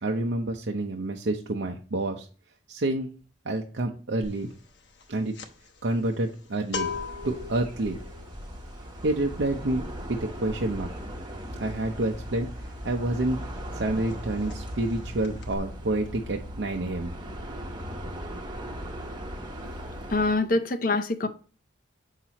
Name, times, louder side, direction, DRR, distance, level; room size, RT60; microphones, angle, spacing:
voice 1, 0.0-2.3 2.7-3.1 3.4-4.5 5.1-5.3 5.8-6.9 7.2-8.0 9.0-10.9 11.6-12.5 12.8-13.4 13.7-17.1, right 2 dB, 75° right, 0.7 m, -28 dB
sound 1, 4.2-4.5 4.8-13.3 13.6-13.8 14.1-14.9 15.2-15.6, left 6 dB, 70° left, 1.0 m, -39 dB
sound 2, 6.7-20.3, equal, 25° right, 1.0 m, -38 dB
voice 2, 20.1-21.3, left 2 dB, 45° left, 0.7 m, -24 dB
7.3 x 5.8 x 2.9 m
head